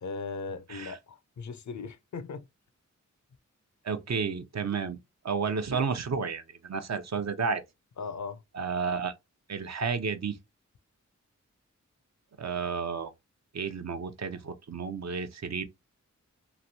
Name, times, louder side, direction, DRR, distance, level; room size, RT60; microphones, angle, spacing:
voice 1, 0.0-2.5 8.0-8.4, left 4 dB, 65° left, 0.5 m, -38 dB
voice 2, 3.8-5.0 5.2-7.6 8.5-9.1 9.5-10.4 12.4-13.1 13.5-15.6, right 5 dB, 55° right, 0.6 m, -31 dB
3.1 x 2.6 x 2.7 m
cardioid pair, 45°, 31 cm